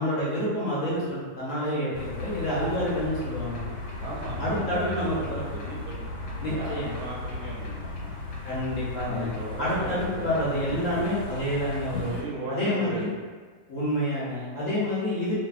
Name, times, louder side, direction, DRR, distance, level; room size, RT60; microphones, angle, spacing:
voice 1, 0.0-3.7 4.4-5.4 6.4-6.9 8.4-9.3 9.6-12.2 12.5-13.1 13.7-15.3, left 1 dB, 65° left, -8 dB, 0.9 m, -28 dB
sound 1, 1.9-12.2, left 2 dB, 90° left, 1.2 m, -36 dB
voice 2, 4.0-8.1 9.0-11.1 12.0-13.1, right 2 dB, 75° right, -4 dB, 1.1 m, -37 dB
2.6 x 2.6 x 2.3 m, 1.5 s
omnidirectional pair, 1.8 m